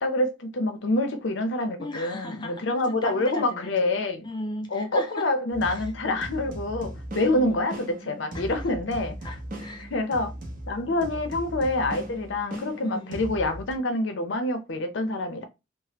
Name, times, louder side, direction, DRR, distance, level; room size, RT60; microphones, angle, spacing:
voice 1, 0.0-4.3 4.7-9.2 9.8-10.3 10.7-15.4, left 2 dB, 75° left, 0.6 m, -26 dB
voice 2, 1.8-3.9 4.2-5.3 5.7-5.9 7.2-7.6 8.3-8.6 9.2-9.9 10.9-11.0 12.8-13.1, left 1 dB, 25° left, 0.5 m, -37 dB
sound 1, 5.5-13.7, right 1 dB, 45° right, 0.8 m, -38 dB
3.3 x 2.0 x 2.9 m
head